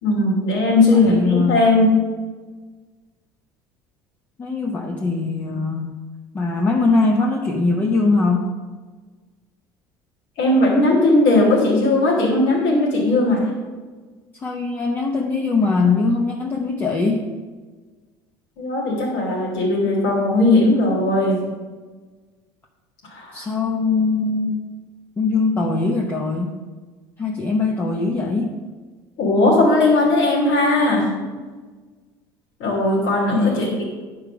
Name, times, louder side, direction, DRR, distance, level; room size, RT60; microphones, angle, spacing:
voice 1, 0.0-2.0 10.4-13.5 18.6-21.4 23.1-23.4 29.2-31.1 32.6-33.8, left 2 dB, 70° left, -4 dB, 2.7 m, -18 dB
voice 2, 0.9-1.6 4.4-5.9 6.3-8.5 14.4-17.2 23.3-24.6 25.2-26.5 27.2-28.6 33.3-33.8, left 3 dB, 25° left, 1 dB, 0.7 m, -21 dB
10.0 x 4.7 x 6.0 m, 1.4 s
cardioid pair, 155°, 9 cm